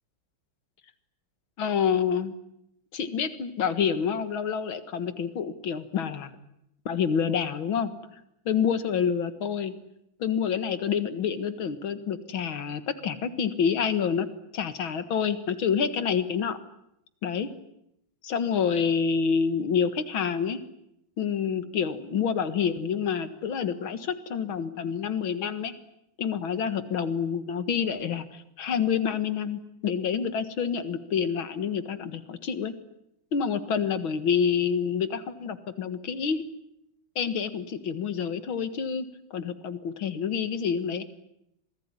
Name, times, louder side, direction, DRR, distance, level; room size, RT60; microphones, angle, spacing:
voice 1, 1.6-2.3 2.9-6.3 6.9-7.9 8.5-9.7 10.2-14.3 14.5-16.6 17.2-17.5 18.2-20.6 21.2-25.7 26.2-32.7 33.3-36.5 37.2-39.1 39.3-41.0, left 7 dB, 70° left, 11 dB, 2.5 m, -28 dB
26.5 x 20.0 x 9.8 m, 0.80 s
omnidirectional pair, 2.3 m